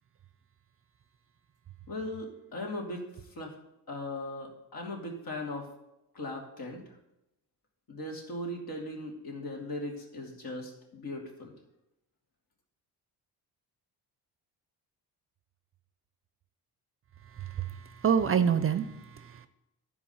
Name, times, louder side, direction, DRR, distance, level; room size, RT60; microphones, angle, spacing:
voice 1, 1.9-3.0 3.3-3.5 3.9-5.7 6.1-6.8 7.9-11.5, left 1 dB, 60° left, 2.8 m, -38 dB
voice 2, 17.4-19.5, right 7 dB, 35° right, 0.6 m, -28 dB
13.0 x 5.0 x 5.6 m
cardioid pair, 120°, 40 cm